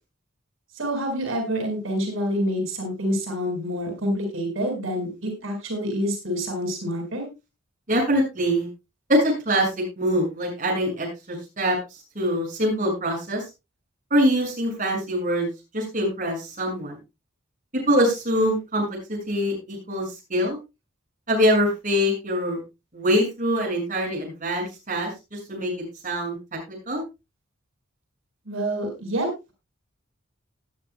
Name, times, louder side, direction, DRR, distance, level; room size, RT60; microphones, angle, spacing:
voice 1, 0.8-7.3 28.5-29.3, equal, 80° right, 3 dB, 6.5 m, -27 dB
voice 2, 7.9-8.7 9.1-11.8 12.1-13.4 14.1-15.5 15.7-17.0 17.7-19.0 19.3-20.0 20.3-20.6 21.3-22.6 22.9-25.7 26.0-26.4 26.7-27.0, equal, 40° right, -1 dB, 6.5 m, -24 dB
19.0 x 11.0 x 2.3 m, 0.26 s
head